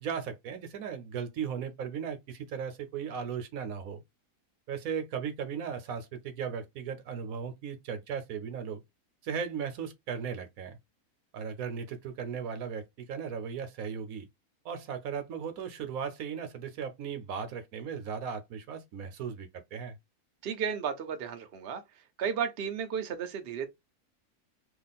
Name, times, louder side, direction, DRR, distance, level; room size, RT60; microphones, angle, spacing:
voice 1, 0.0-4.0 4.7-8.8 9.2-10.8 11.3-14.3 14.6-19.9, right 7 dB, 70° right, 1.1 m, -37 dB
voice 2, 20.4-21.8 22.2-23.7, right 7 dB, 50° right, 0.8 m, -33 dB
3.0 x 2.4 x 4.0 m
omnidirectional pair, 1.5 m